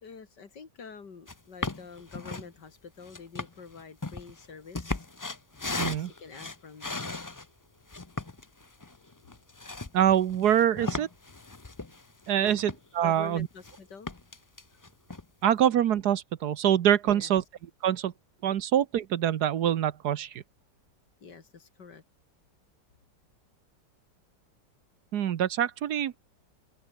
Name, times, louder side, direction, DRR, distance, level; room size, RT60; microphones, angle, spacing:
voice 1, 0.0-5.1 5.7-7.2 12.4-12.6 13.0-14.1 17.0-17.4 21.2-22.0, left 5 dB, 70° left, 3.1 m, -47 dB
sound 1, 1.3-1.4 1.6-2.5 3.0-7.5 7.9-13.1 13.4-13.8 14.1-15.2, left 3 dB, 25° left, 0.4 m, -37 dB
voice 2, 5.8-6.1 9.9-11.1 12.3-13.5 15.4-17.4 17.8-18.1 18.4-20.4 25.1-26.2, right 10 dB, 65° right, 1.4 m, -25 dB
omnidirectional pair, 1.9 m